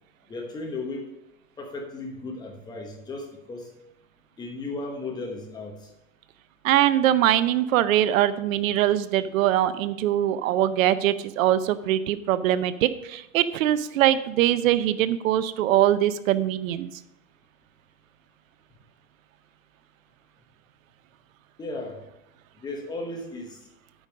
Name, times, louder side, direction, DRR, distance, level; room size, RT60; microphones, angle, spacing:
voice 1, 0.3-1.1 1.6-3.7 4.4-5.9 21.6-22.0 22.6-23.6, left 2 dB, 10° left, 1 dB, 1.1 m, -35 dB
voice 2, 6.6-16.9, right 12 dB, 90° right, 14 dB, 0.7 m, -22 dB
8.8 x 5.3 x 6.3 m, 0.82 s
supercardioid pair, 175°, 39 cm